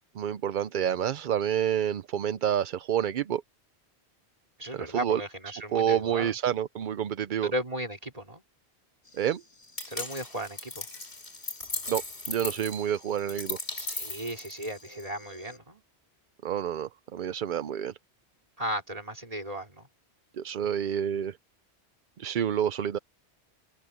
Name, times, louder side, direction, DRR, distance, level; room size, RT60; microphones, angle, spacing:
voice 1, 0.2-3.4 4.7-5.2 5.7-7.5 9.2-9.4 11.9-12.0 12.3-13.6 16.4-17.9 20.4-21.4 22.2-23.0, right 9 dB, 55° right, 0.6 m, -28 dB
voice 2, 4.6-6.3 7.4-8.4 9.9-10.9 13.7-15.8 18.6-19.9, equal, 35° right, 4.0 m, -35 dB
sound 1, 9.0-15.6, left 2 dB, 25° left, 7.9 m, -54 dB
sound 2, 9.8-15.0, left 3 dB, 75° left, 3.6 m, -37 dB
omnidirectional pair, 1.1 m